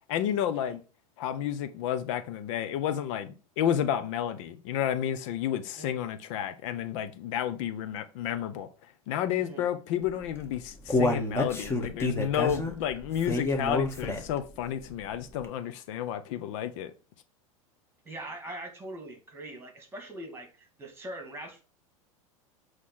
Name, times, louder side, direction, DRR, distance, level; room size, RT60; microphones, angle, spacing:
voice 1, 0.1-0.8 1.2-8.7 9.1-16.9, left 10 dB, 60° left, 0.8 m, -31 dB
Human voice, 10.3-14.5 14.9-15.0 15.4-15.5, left 2 dB, 15° left, 1.7 m, -28 dB
voice 2, 18.0-21.6, right 1 dB, 15° right, 2.3 m, -42 dB
8.3 x 3.2 x 5.6 m
hypercardioid pair, 95°, 18 cm